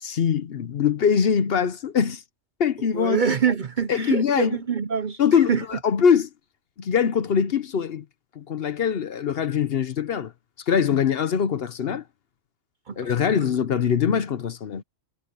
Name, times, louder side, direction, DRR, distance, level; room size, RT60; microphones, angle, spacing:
voice 1, 0.0-2.2 2.6-3.2 3.9-4.6 5.2-6.3 6.8-8.0 8.4-10.3 10.7-12.0 13.0-14.8, left 7 dB, 55° left, 0.9 m, -22 dB
voice 2, 2.9-5.2 5.5-5.6 12.9-13.4, right 7 dB, 50° right, 0.7 m, -25 dB
omnidirectional pair, 1.3 m